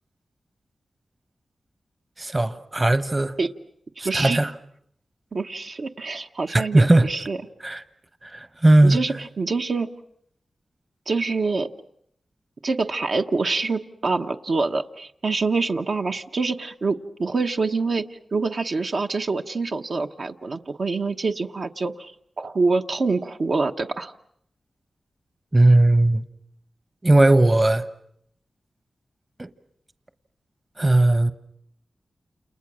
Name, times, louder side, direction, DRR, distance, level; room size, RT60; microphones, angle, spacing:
voice 1, 2.2-3.4 4.0-4.5 6.5-7.1 7.6-7.8 8.2-9.0 25.5-26.3 27.0-27.8 29.4-29.5 30.8-31.3, right 2 dB, 25° right, 1.1 m, -18 dB
voice 2, 4.0-4.4 5.3-7.4 8.8-9.9 11.1-11.7 12.6-18.0 18.3-24.1, right 3 dB, 60° right, 1.1 m, -25 dB
29.0 x 29.0 x 6.3 m
wide cardioid pair, 75°, 0 cm